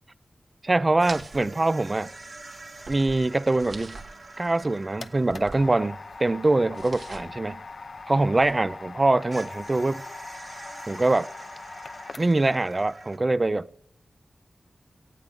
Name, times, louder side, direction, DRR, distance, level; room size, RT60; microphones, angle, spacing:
voice 1, 0.6-2.1 2.9-4.0 4.4-7.6 8.1-10.0 10.9-11.3 12.2-13.8, right 2 dB, 30° right, 0.4 m, -24 dB
sound 1, 1.0-8.7 9.3-13.2, right 2 dB, 50° right, 1.6 m, -46 dB
sound 2, 1.1-8.8, right 3 dB, 75° right, 1.8 m, -47 dB
sound 3, 4.6-12.6, left 4 dB, 65° left, 0.7 m, -42 dB
17.5 x 16.0 x 3.7 m
wide cardioid pair, 100°, 0 cm